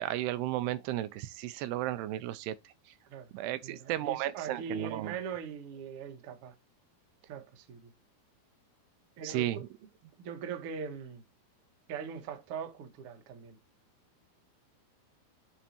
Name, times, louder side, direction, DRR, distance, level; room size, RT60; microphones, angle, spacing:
voice 1, 0.0-2.6 3.3-5.2 9.2-9.6, right 14 dB, 85° right, 2.6 m, -34 dB
voice 2, 3.6-6.5 7.3-7.9 9.2-9.6 10.2-11.2 11.9-13.6, right 6 dB, 70° right, 1.4 m, -41 dB
11.0 x 4.2 x 2.9 m
omnidirectional pair, 4.8 m